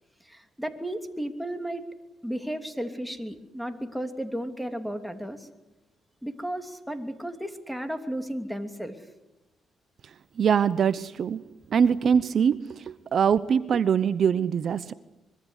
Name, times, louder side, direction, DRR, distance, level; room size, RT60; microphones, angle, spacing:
voice 1, 0.2-1.8 2.2-5.5 6.2-9.1, right 1 dB, ahead, 6 dB, 3.0 m, -34 dB
voice 2, 10.4-11.4 11.7-12.6 13.1-14.9, right 7 dB, 55° right, 14 dB, 0.8 m, -22 dB
25.0 x 23.0 x 8.2 m, 0.97 s
cardioid pair, 90°, 0 cm